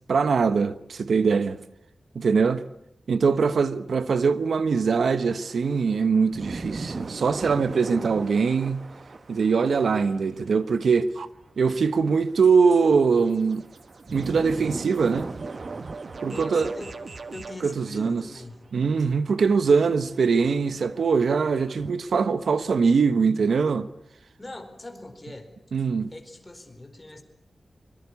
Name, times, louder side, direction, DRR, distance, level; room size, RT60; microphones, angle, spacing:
voice 1, 0.1-1.6 2.1-2.6 3.1-8.8 9.3-11.3 11.6-13.6 14.1-15.3 16.2-16.7 17.6-18.3 18.7-23.9 25.7-26.1, right 5 dB, 85° right, 1.2 m, -22 dB
voice 2, 3.3-3.6 16.2-17.0 17.3-18.5 24.4-25.5 26.1-27.2, left 2 dB, 20° left, 4.5 m, -41 dB
sound 1, 4.9-10.7 11.0-11.1 11.6-21.9, right 3 dB, 45° right, 1.1 m, -40 dB
sound 2, 12.2-17.6, right 4 dB, 65° right, 2.0 m, -43 dB
24.5 x 24.5 x 8.5 m
wide cardioid pair, 125°, 0 cm